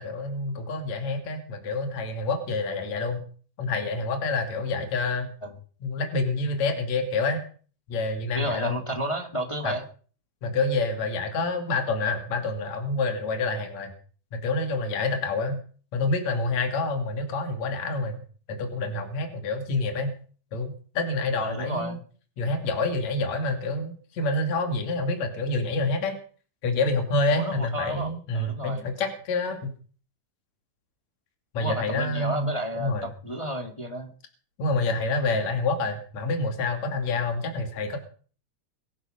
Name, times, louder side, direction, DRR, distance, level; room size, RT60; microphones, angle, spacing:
voice 1, 0.0-3.3 3.6-5.3 5.8-7.4 7.9-8.8 9.6-9.7 10.4-13.9 14.3-15.6 15.9-18.2 18.5-20.1 20.5-22.0 22.4-26.2 26.6-29.7 31.5-32.5 32.8-33.1 34.6-38.0, left 3 dB, 55° left, 5 dB, 3.7 m, -27 dB
voice 2, 8.3-9.8 21.4-22.0 27.3-28.8 31.6-34.1, equal, 10° left, 4 dB, 1.6 m, -32 dB
23.5 x 8.9 x 6.6 m, 0.43 s
omnidirectional pair, 3.8 m